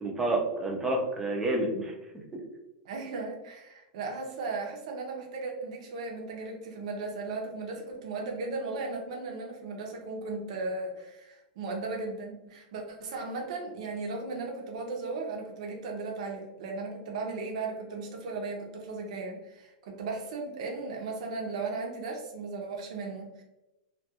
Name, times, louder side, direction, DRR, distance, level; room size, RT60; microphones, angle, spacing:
voice 1, 0.0-1.9 2.3-2.4, right 1 dB, 10° right, 0 dB, 0.4 m, -29 dB
voice 2, 2.8-23.4, right 3 dB, 60° right, 0 dB, 0.5 m, -36 dB
2.2 x 2.2 x 2.7 m, 0.96 s
supercardioid pair, 170°, 4 cm